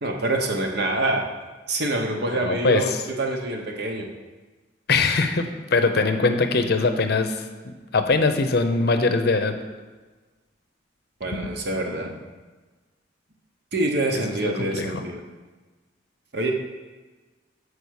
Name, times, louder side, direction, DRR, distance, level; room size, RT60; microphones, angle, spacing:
voice 1, 0.0-1.3 1.7-4.1 11.2-12.1 13.7-15.2 16.3-16.5, right 2 dB, 55° right, 2 dB, 1.0 m, -26 dB
voice 2, 2.3-3.0 4.9-5.5 5.7-9.5 14.1-15.0, left 3 dB, 55° left, 7 dB, 0.6 m, -22 dB
7.0 x 4.8 x 6.4 m, 1.3 s
head